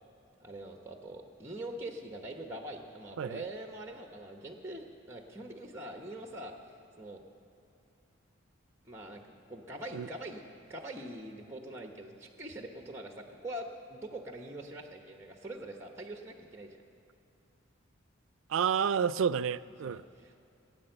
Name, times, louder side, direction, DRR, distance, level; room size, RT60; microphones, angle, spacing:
voice 1, 0.4-6.6 7.0-7.2 8.8-9.2 9.5-10.4 10.7-16.7 19.8-20.4, right 1 dB, 15° right, 3 dB, 0.9 m, -43 dB
voice 2, 18.5-20.0, right 7 dB, 80° right, 17 dB, 0.4 m, -30 dB
17.0 x 9.5 x 7.8 m, 2.5 s
head